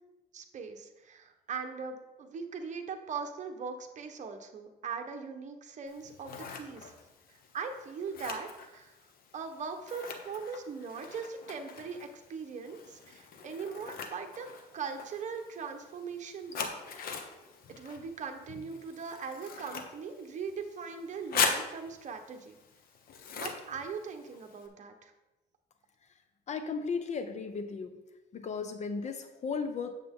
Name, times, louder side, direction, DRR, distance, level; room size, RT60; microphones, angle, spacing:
voice 1, 0.3-6.9 7.3-8.9 9.3-14.5 14.7-16.8 17.8-22.6 23.4-25.1, right 5 dB, 45° right, 5 dB, 1.2 m, -40 dB
Scissors, 5.9-24.7, left 5 dB, 60° left, 1.2 m, -41 dB
voice 2, 26.5-27.9 28.3-29.9, left 5 dB, 45° left, 9 dB, 0.8 m, -35 dB
8.7 x 7.4 x 3.7 m, 1.0 s
cardioid pair, 110°, 17 cm